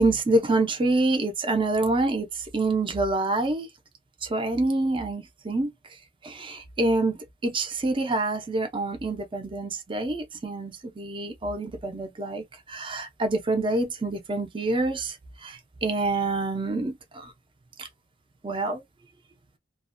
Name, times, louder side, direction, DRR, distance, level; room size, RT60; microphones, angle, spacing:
voice 1, 0.0-3.7 4.2-5.7 6.2-17.3 17.8-17.9 18.4-18.8, right 2 dB, 25° right, 0.5 m, -27 dB
2.4 x 2.1 x 2.5 m
head